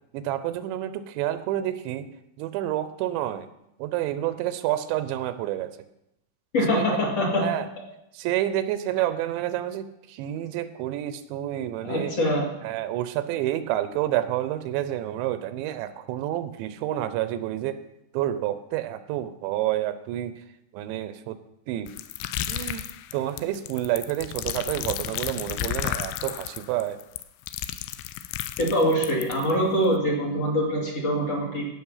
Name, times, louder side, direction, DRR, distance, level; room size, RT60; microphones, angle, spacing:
voice 1, 0.1-2.1 2.4-3.5 3.8-5.7 6.7-7.0 7.4-7.7 8.1-12.1 12.6-17.8 18.1-20.4 20.7-21.4 21.7-21.9 22.5-22.8 23.1-27.0, right 13 dB, 90° right, 12 dB, 3.0 m, -29 dB
voice 2, 6.5-7.4 11.8-12.5 28.6-31.6, equal, 40° left, -3 dB, 2.7 m, -24 dB
sound 1, 21.9-29.5, left 13 dB, 90° left, 2.9 m, -32 dB
16.0 x 6.0 x 5.6 m, 0.84 s
omnidirectional pair, 5.1 m